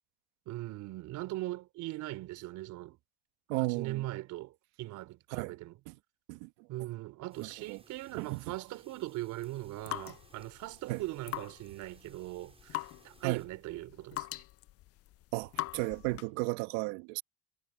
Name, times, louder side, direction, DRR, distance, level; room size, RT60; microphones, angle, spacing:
voice 1, 0.5-3.0 3.5-5.8 6.7-14.4, right 17 dB, 65° right, 3.7 m, -40 dB
voice 2, 3.5-4.0 5.3-5.5 5.9-6.0 6.3-6.5 7.4-7.8 8.2-8.4 10.9-11.0 13.2-13.4 15.3-17.2, right 22 dB, 80° right, 1.6 m, -34 dB
Inside ambiance, 7.3-13.5, right 3 dB, 20° right, 5.5 m, -62 dB
sound 1, 9.4-16.4, left 16 dB, 45° left, 0.5 m, -43 dB
supercardioid pair, 100°, 32 cm